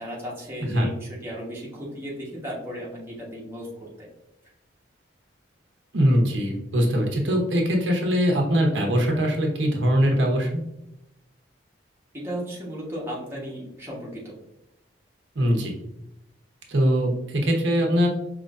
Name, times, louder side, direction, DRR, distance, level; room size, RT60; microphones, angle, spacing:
voice 1, 0.0-4.1 12.1-14.4, equal, 15° right, -6 dB, 1.2 m, -35 dB
voice 2, 5.9-10.6 15.3-15.7 16.7-18.1, equal, 80° right, 1 dB, 0.9 m, -22 dB
5.2 x 3.0 x 2.5 m, 0.84 s
head